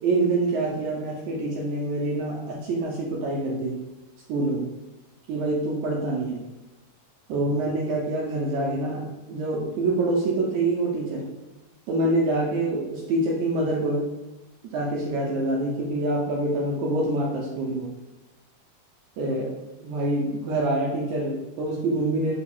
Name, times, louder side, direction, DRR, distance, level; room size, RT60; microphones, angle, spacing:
voice 1, 0.0-3.8 4.3-4.7 5.3-6.4 7.3-11.3 11.9-14.1 14.7-17.9 19.2-19.6 19.8-22.3, right 2 dB, 80° right, -2 dB, 1.9 m, -26 dB
4.8 x 2.3 x 4.2 m, 1.1 s
omnidirectional pair, 3.4 m